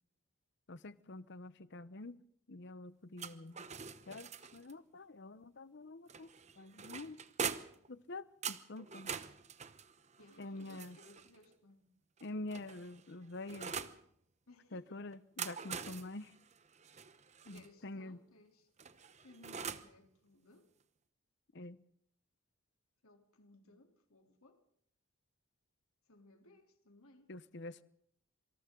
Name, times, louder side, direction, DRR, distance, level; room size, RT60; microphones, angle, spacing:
voice 1, 0.7-2.2 2.5-3.7 4.1-6.3 6.6-7.2 7.9-9.2 10.4-11.0 12.2-13.8 14.7-16.3 17.4-18.2 21.5-21.8 27.3-27.8, left 2 dB, 50° left, 0.8 m, -47 dB
sound 1, 3.2-4.7 6.1-7.9 8.4-11.4 12.2-14.0 15.1-17.7 18.8-20.0, right 6 dB, 30° right, 1.0 m, -44 dB
voice 2, 10.2-11.9 14.5-15.0 17.5-18.7 19.2-20.7 23.0-24.6 26.1-27.3, left 2 dB, 80° left, 3.3 m, -62 dB
26.5 x 25.5 x 3.8 m
head